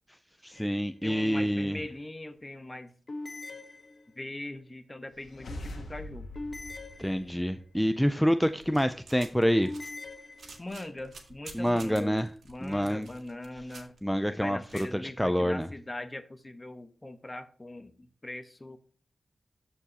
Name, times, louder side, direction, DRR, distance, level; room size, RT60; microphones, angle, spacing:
voice 1, 0.4-1.8 7.0-9.7 11.5-12.3 12.6-13.1 14.0-15.7, equal, 5° left, 9 dB, 0.5 m, -27 dB
sound 1, 0.5-1.1 3.1-4.4 6.3-7.7 9.6-10.9, left 2 dB, 50° left, 1.2 m, -43 dB
voice 2, 1.0-3.0 4.1-6.3 10.6-12.2 12.5-14.0 14.3-18.8, left 1 dB, 25° left, 9 dB, 1.1 m, -41 dB
sound 2, 5.1-7.9, left 1 dB, 90° left, 1.3 m, -43 dB
sound 3, 8.4-14.8, right 3 dB, 80° right, 2.0 m, -50 dB
13.0 x 4.7 x 2.9 m, 0.43 s
cardioid pair, 65°, 0 cm